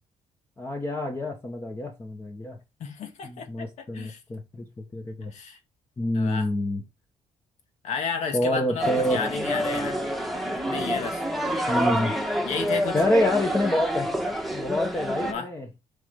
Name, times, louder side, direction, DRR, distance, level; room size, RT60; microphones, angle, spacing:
voice 1, 0.6-2.6 3.2-5.3 6.0-6.8 8.3-9.2 11.7-12.2 12.9-14.1 14.5-15.7, left 1 dB, 20° left, 1.3 m, -27 dB
voice 2, 2.8-3.7 3.9-4.2 5.3-5.6 6.1-6.5 7.8-10.0 10.7-11.2 12.4-13.0 15.2-15.5, left 5 dB, 65° left, 1.9 m, -32 dB
sound 1, 8.8-15.3, equal, ahead, 1.4 m, -27 dB
7.2 x 5.2 x 3.6 m
cardioid pair, 135°, 12 cm